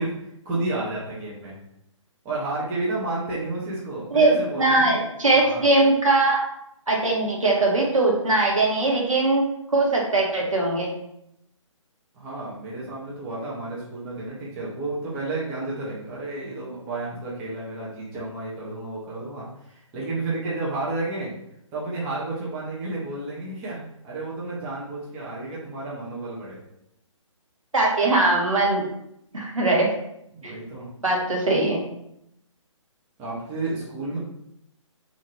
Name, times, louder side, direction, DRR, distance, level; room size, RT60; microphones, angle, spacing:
voice 1, 0.0-1.5 2.2-5.0 5.3-5.6 12.1-21.3 21.7-26.6 30.3-30.9 33.2-34.2, right 2 dB, 10° right, -6 dB, 0.4 m, -31 dB
voice 2, 4.1-6.4 6.9-10.9 27.7-28.8 29.3-29.9 30.4-30.5 31.0-31.8, right 2 dB, 75° right, -1 dB, 1.0 m, -21 dB
2.6 x 2.5 x 2.9 m, 0.78 s
figure-of-eight pair, 140°, 17 cm